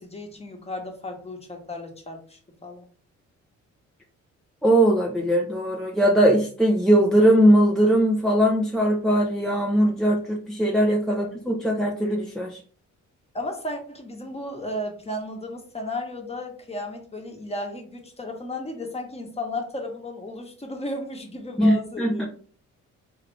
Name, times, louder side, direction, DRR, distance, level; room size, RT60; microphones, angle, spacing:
voice 1, 0.0-2.9 11.1-11.3 13.3-22.3, left 1 dB, 20° left, 3 dB, 1.2 m, -34 dB
voice 2, 4.6-12.6 21.6-22.3, right 1 dB, ahead, -1 dB, 0.7 m, -20 dB
3.7 x 3.3 x 3.2 m, 0.43 s
cardioid pair, 90°, 30 cm